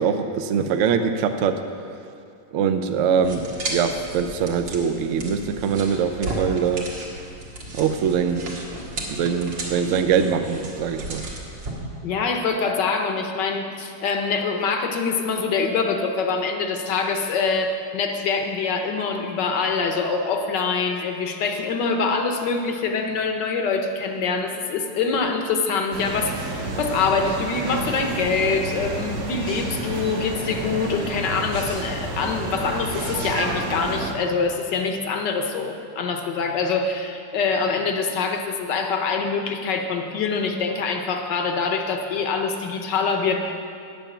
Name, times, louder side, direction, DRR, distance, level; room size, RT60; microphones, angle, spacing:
voice 1, 0.0-1.6 2.5-6.9 7.7-8.6 9.1-11.2, right 6 dB, 65° right, 7 dB, 0.7 m, -23 dB
sound 1, 3.2-11.7, right 2 dB, 85° right, 2.4 m, -34 dB
voice 2, 12.0-43.5, left 4 dB, 70° left, 4 dB, 1.6 m, -24 dB
sound 2, 25.9-34.1, right 2 dB, 50° right, 1.3 m, -30 dB
9.1 x 6.9 x 8.8 m, 2.4 s
omnidirectional pair, 2.0 m